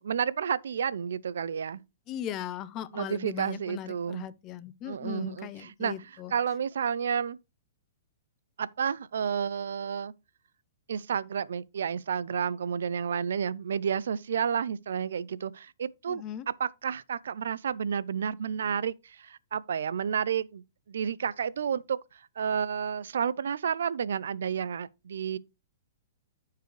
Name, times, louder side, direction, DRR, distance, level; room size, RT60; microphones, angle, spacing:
voice 1, 0.0-1.8 2.9-4.3 4.9-7.4 8.6-10.1 10.9-16.2 16.6-20.6 20.9-22.0 22.4-25.4, right 7 dB, 75° right, 0.5 m, -31 dB
voice 2, 2.1-6.3 16.1-16.5, left 10 dB, 30° left, 0.6 m, -38 dB
12.5 x 4.7 x 3.2 m
hypercardioid pair, 130°, 0 cm